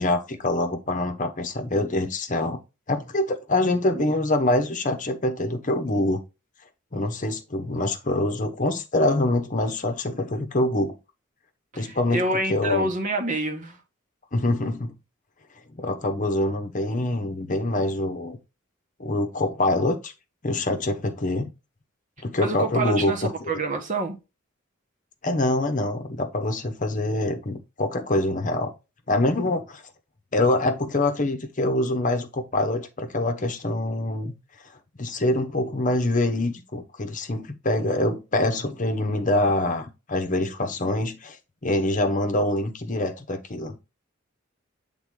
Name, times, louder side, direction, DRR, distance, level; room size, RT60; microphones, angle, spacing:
voice 1, 0.0-2.6 2.9-6.2 6.9-10.9 11.8-12.2 12.5-12.9 14.3-14.9 15.7-18.4 19.0-20.1 20.4-21.5 22.2-23.3 25.2-28.7 29.1-29.8 30.3-34.3 35.0-41.4 41.6-43.8, left 1 dB, 40° left, 1.0 m, -25 dB
voice 2, 11.7-13.8 22.4-24.2, right 1 dB, 40° right, 1.3 m, -27 dB
8.0 x 3.7 x 3.7 m
head